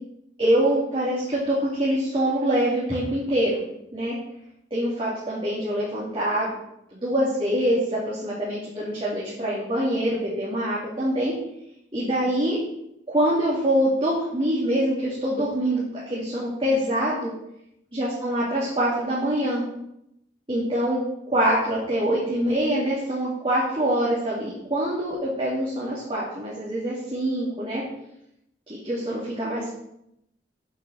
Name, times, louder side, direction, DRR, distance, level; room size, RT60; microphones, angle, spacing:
voice 1, 0.4-3.6 3.9-4.1 4.7-6.6 6.9-11.3 11.9-12.6 13.1-17.3 17.9-19.6 20.5-21.0 21.3-27.8 28.7-29.7, right 1 dB, 30° right, -7 dB, 2.7 m, -24 dB
8.1 x 6.5 x 6.5 m, 0.80 s
head